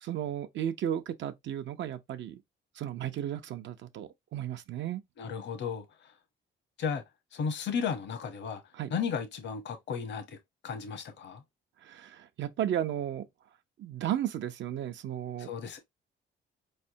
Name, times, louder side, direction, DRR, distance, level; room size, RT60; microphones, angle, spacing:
voice 1, 0.0-2.4 2.8-5.0 8.7-8.9 11.8-13.2 13.8-15.5, right 10 dB, 65° right, 0.7 m, -34 dB
voice 2, 5.2-6.1 6.8-7.0 7.3-8.6 8.9-10.4 10.6-11.4 15.4-15.8, left 6 dB, 65° left, 1.0 m, -34 dB
4.3 x 3.3 x 2.7 m
cardioid pair, 90°, 20 cm